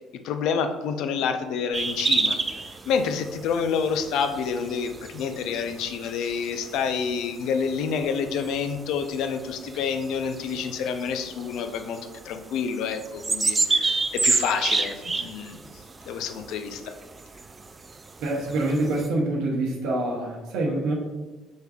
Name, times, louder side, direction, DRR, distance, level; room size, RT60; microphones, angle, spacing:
voice 1, 0.2-2.4 2.9-12.0 12.2-15.6 16.1-16.9, left 6 dB, 65° left, 7 dB, 0.4 m, -28 dB
sound 1, 1.7-19.1, right 3 dB, 30° right, 0.3 m, -31 dB
voice 2, 18.2-20.9, right 2 dB, 70° right, -1 dB, 0.8 m, -26 dB
6.3 x 3.3 x 2.3 m, 1.2 s
hypercardioid pair, 55°, 0 cm